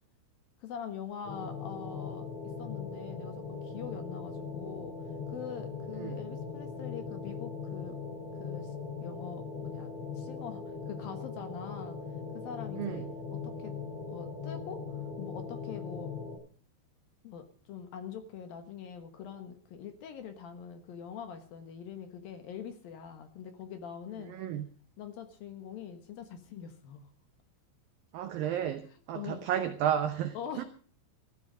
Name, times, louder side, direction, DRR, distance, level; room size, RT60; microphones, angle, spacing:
voice 1, 0.6-2.3 2.6-5.0 5.3-8.0 8.4-8.7 9.0-9.9 10.2-12.0 12.3-13.7 14.1-16.1 17.2-24.4 25.0-27.1 28.9-29.4 30.3-30.6, left 8 dB, 65° left, 7 dB, 2.6 m, -43 dB
sound 1, 1.2-16.4, left 5 dB, 85° left, 8.5 m, -40 dB
voice 2, 12.8-13.1 24.3-24.7 28.1-30.6, right 10 dB, 85° right, 8 dB, 2.0 m, -32 dB
15.0 x 13.5 x 5.1 m, 0.43 s
omnidirectional pair, 5.4 m